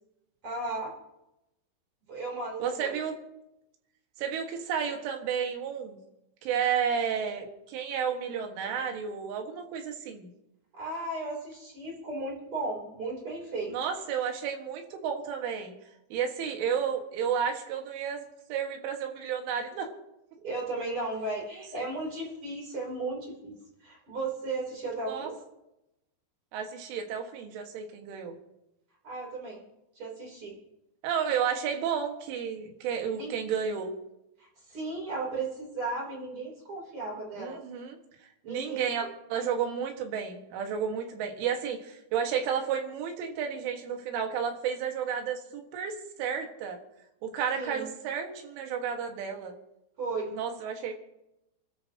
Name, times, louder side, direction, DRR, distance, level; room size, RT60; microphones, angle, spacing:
voice 1, 0.4-0.9 2.1-3.0 10.7-13.7 20.4-25.3 29.0-29.6 30.0-30.6 33.2-33.3 34.4-37.6 38.4-38.9 47.5-47.9 50.0-50.4, right 2 dB, 30° right, -2 dB, 3.8 m, -35 dB
voice 2, 2.6-3.2 4.2-6.0 6.4-10.3 13.7-15.8 16.1-18.2 18.5-19.9 21.7-21.9 25.1-25.3 26.5-28.4 31.0-33.9 37.4-46.8 47.2-49.5 50.3-50.9, right 7 dB, 80° right, 3 dB, 4.2 m, -32 dB
29.0 x 13.0 x 2.9 m, 0.89 s
omnidirectional pair, 5.5 m